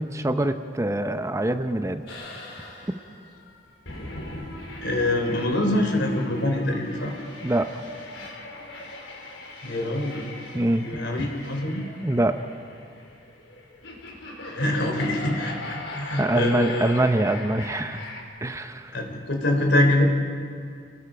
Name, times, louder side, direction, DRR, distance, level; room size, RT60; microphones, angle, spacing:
voice 1, 0.0-2.0 7.4-7.7 10.5-10.8 11.2-11.3 12.0-12.4 16.2-18.1 18.4-19.0, right 1 dB, 15° right, 9 dB, 0.6 m, -24 dB
sound 1, 2.1-18.2, left 1 dB, 85° left, 4.1 m, -39 dB
voice 2, 4.8-7.1 9.6-10.2 10.8-11.8 14.4-17.0 18.9-20.0, left 1 dB, 65° left, 3 dB, 3.6 m, -25 dB
30.0 x 19.0 x 5.1 m, 2.2 s
head